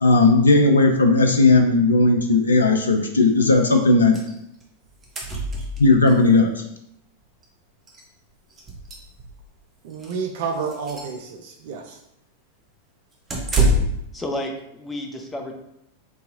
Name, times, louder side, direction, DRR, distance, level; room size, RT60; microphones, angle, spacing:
voice 1, 0.0-4.2 5.8-6.6, left 3 dB, 75° left, 4 dB, 0.3 m, -16 dB
sound 1, 4.1-4.3 4.6-4.7 4.9-6.2 7.4-7.5 7.9-8.0 8.5-9.5 9.9-10.2 10.6-11.2 13.3-14.1, right 1 dB, 25° right, 0.8 m, -25 dB
voice 2, 9.8-12.0, right 5 dB, 50° right, 3 dB, 0.4 m, -30 dB
voice 3, 14.1-15.5, left 1 dB, 10° left, 2 dB, 0.5 m, -31 dB
3.9 x 2.7 x 2.6 m, 0.80 s
figure-of-eight pair, 90°, 0 cm